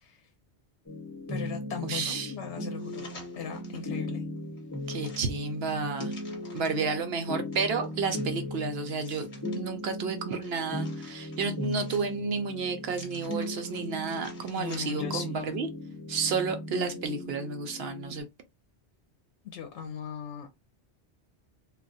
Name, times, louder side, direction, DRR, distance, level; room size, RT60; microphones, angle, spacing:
sound 1, 0.9-18.2, left 1 dB, 15° left, 1.0 m, -38 dB
voice 1, 1.3-3.0 3.4-4.3 14.5-15.5 19.5-20.5, left 8 dB, 85° left, 0.9 m, -38 dB
voice 2, 1.8-2.3 4.9-6.1 6.5-9.3 9.5-15.7 16.1-18.3, right 5 dB, 70° right, 0.8 m, -31 dB
sound 2, 2.8-3.9 4.4-6.9 7.5-9.6 10.1-12.4 12.9-15.2 15.5-15.6, left 2 dB, 45° left, 1.2 m, -51 dB
2.3 x 2.3 x 3.9 m
omnidirectional pair, 1.1 m